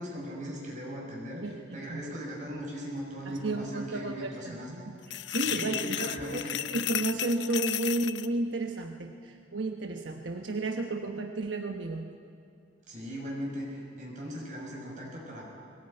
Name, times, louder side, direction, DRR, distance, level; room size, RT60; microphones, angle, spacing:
voice 1, 0.0-4.9 5.4-6.6 12.9-15.5, equal, 40° right, -3 dB, 6.5 m, -39 dB
voice 2, 1.4-2.1 3.3-4.6 4.9-6.4 6.7-12.1, right 2 dB, 85° right, 3 dB, 1.1 m, -33 dB
sound 1, 5.0-8.3, left 12 dB, 70° left, 0.5 m, -33 dB
21.5 x 18.0 x 8.9 m, 2.4 s
head